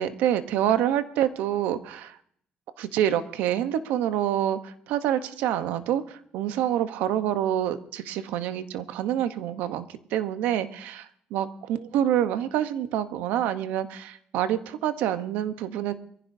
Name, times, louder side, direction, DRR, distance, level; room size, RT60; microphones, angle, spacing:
voice 1, 0.0-2.2 2.8-9.9 10.1-15.9, right 11 dB, 85° right, 11 dB, 0.9 m, -27 dB
23.0 x 15.5 x 2.7 m, 0.64 s
cardioid pair, 115°, 3 cm